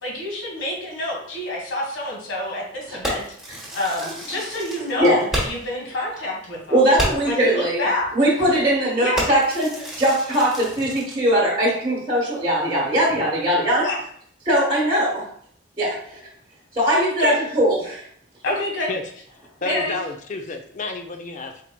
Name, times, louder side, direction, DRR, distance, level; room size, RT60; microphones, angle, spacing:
voice 1, 0.0-6.8 7.2-8.3 9.0-9.3 13.8-14.0 17.2-17.4 18.4-18.9 19.6-20.0, left 1 dB, 90° left, -2 dB, 1.4 m, -27 dB
Fireworks, 3.0-5.8 6.1-6.2 6.5-6.6 7.0-7.4 8.0-8.2 8.6-8.8 9.2-11.2, right 1 dB, 5° right, 1.1 m, -30 dB
voice 2, 6.7-7.9 8.1-13.8 14.4-15.2 15.8-16.2 16.7-18.0, right 1 dB, 25° right, -5 dB, 1.2 m, -20 dB
voice 3, 19.6-21.6, left 3 dB, 40° left, 5 dB, 0.5 m, -30 dB
4.3 x 4.0 x 2.2 m, 0.63 s
head